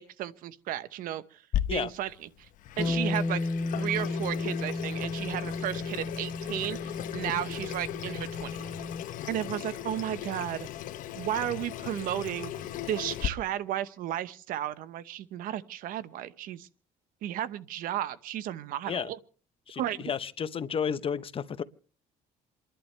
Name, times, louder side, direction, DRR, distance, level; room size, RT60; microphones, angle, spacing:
voice 1, 0.0-1.4 1.7-2.1 2.4-2.5 2.8-3.4 3.7-8.6 9.3-10.7 11.1-12.5 12.9-16.7 17.2-19.2 19.8-20.1, right 12 dB, 70° right, 0.9 m, -34 dB
Water tap faucet / Sink (filling or washing), 1.5-13.3, left 11 dB, 65° left, 0.9 m, -37 dB
Bass guitar, 2.8-9.0, left 2 dB, 10° left, 0.9 m, -34 dB
voice 2, 19.7-21.6, left 7 dB, 40° left, 0.8 m, -32 dB
28.5 x 11.0 x 3.3 m
cardioid pair, 95°, 15 cm